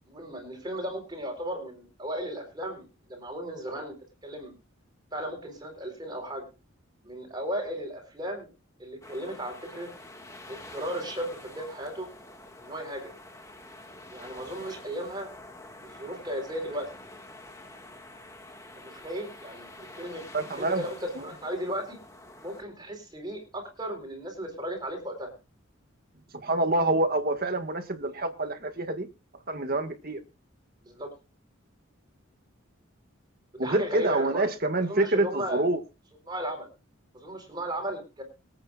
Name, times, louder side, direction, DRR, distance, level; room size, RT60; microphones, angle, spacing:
voice 1, 0.1-4.0 4.2-4.5 5.1-6.5 7.0-8.5 8.8-9.9 10.5-12.1 12.6-13.1 14.1-15.3 15.9-16.9 18.7-20.2 20.6-22.0 22.4-25.3 30.8-31.1 33.5-34.4 34.9-35.6 36.3-36.7 37.1-38.2, equal, 20° right, 4.1 m, -35 dB
sound 1, 9.0-22.6, left 2 dB, 15° left, 1.8 m, -47 dB
voice 2, 20.3-20.9 21.2-21.3 26.3-29.1 29.5-30.2 33.6-35.8, right 2 dB, 45° right, 1.7 m, -27 dB
25.0 x 8.8 x 2.4 m
head